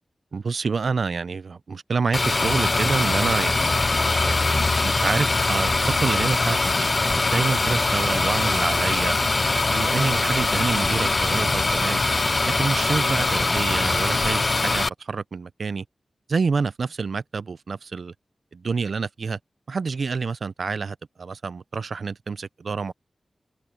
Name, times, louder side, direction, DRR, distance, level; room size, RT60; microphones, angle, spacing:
voice 1, 0.3-3.8 4.2-9.2 9.7-12.0 12.5-15.8 16.3-18.1 18.5-19.4 19.7-22.9, right 4 dB, 70° right, 0.6 m, -28 dB
sound 1, 2.1-14.9, left 3 dB, 40° left, 0.4 m, -22 dB
wide cardioid pair, 90°, 0 cm